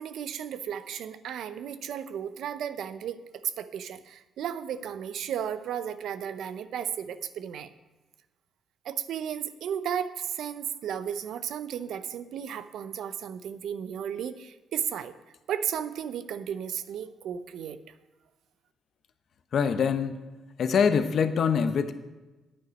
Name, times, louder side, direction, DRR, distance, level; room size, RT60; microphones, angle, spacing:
voice 1, 0.0-7.7 8.8-15.1 15.5-17.8, right 9 dB, 75° right, 12 dB, 0.6 m, -34 dB
voice 2, 19.5-20.2 20.6-21.9, left 6 dB, 60° left, 9 dB, 0.8 m, -24 dB
9.6 x 8.8 x 5.2 m, 1.1 s
cardioid pair, 90°, 0 cm